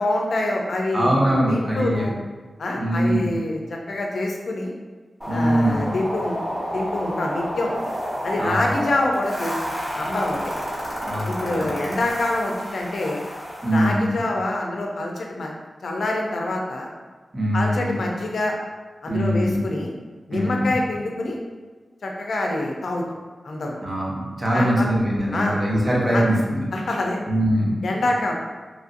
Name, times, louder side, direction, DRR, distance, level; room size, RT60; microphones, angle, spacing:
voice 1, 0.0-1.2 1.5-2.1 2.6-4.7 5.3-6.4 6.7-7.7 8.2-10.4 11.3-13.2 13.7-15.5 15.8-16.9 17.5-18.5 19.0-19.9 20.3-21.4 22.0-23.0 23.4-23.8 24.5-24.9 25.3-25.6 26.1-26.2 26.7-27.2 27.8-28.3, left 2 dB, 75° left, 0 dB, 0.4 m, -26 dB
voice 2, 0.9-2.1 2.7-3.3 5.3-5.9 8.3-8.7 11.0-12.0 13.6-14.1 17.3-18.0 19.1-19.6 20.3-20.7 23.8-26.7 27.3-27.8, equal, 35° right, -4 dB, 0.7 m, -22 dB
sound 1, 5.2-13.9, equal, ahead, 1.1 m, -30 dB
3.1 x 2.5 x 2.5 m, 1.4 s
wide cardioid pair, 105°, 0 cm